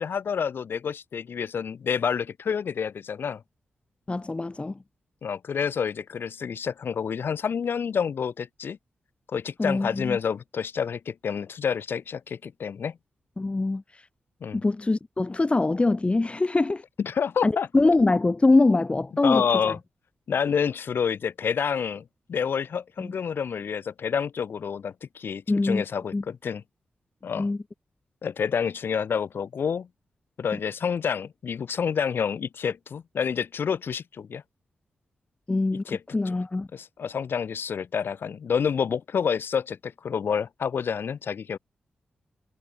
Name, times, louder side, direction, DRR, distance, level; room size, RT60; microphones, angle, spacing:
voice 1, 0.0-3.4 5.2-8.8 9.3-13.0 14.4-14.6 17.0-17.7 19.2-19.8 20.3-26.6 27.2-27.5 28.2-29.9 30.4-34.4 35.8-36.4 36.7-41.6, left 7 dB, 70° left, 6.4 m, -28 dB
voice 2, 4.1-4.7 9.6-10.2 13.4-13.8 14.6-16.8 17.4-19.7 23.0-23.1 25.5-25.8 26.1-26.2 27.4-27.6 35.5-35.8 36.1-36.7, left 2 dB, 30° left, 1.7 m, -23 dB
cardioid pair, 50°, 4 cm